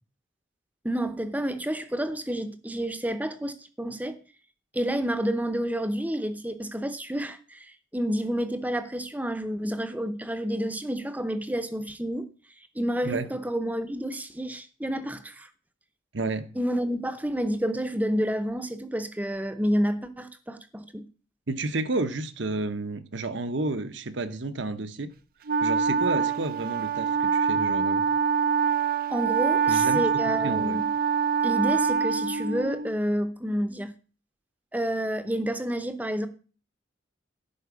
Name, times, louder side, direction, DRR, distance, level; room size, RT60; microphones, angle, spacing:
voice 1, 0.8-4.2 4.7-12.3 12.7-15.5 16.6-21.0 29.1-30.9 31.4-33.9 34.7-36.3, equal, 10° right, 0.7 m, -29 dB
voice 2, 16.1-16.5 21.5-25.1 25.6-28.1 29.7-30.8, right 2 dB, 65° right, 1.0 m, -31 dB
Wind instrument woodwind instrument, 25.5-33.0, right 6 dB, 45° right, 0.5 m, -25 dB
11.0 x 4.8 x 8.2 m
head